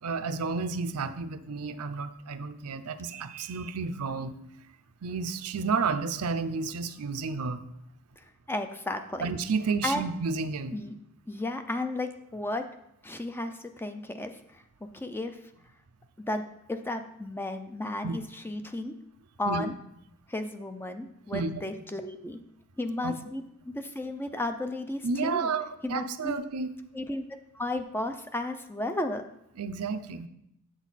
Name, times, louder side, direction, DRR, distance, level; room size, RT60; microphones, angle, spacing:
voice 1, 0.0-4.4 5.0-7.6 9.2-10.8 18.0-18.2 19.5-19.7 21.3-21.6 23.0-23.1 25.0-26.7 29.6-30.3, right 4 dB, 80° right, 8 dB, 0.6 m, -31 dB
voice 2, 8.5-9.3 9.8-10.1 10.7-11.0 11.3-12.6 13.0-14.6 14.9-15.4 16.3-16.4 16.7-18.9 19.4-19.7 20.3-22.4 22.8-25.5 25.8-26.4 26.9-29.2, left 1 dB, 10° left, 7 dB, 0.5 m, -33 dB
8.0 x 6.3 x 4.1 m, 0.77 s
head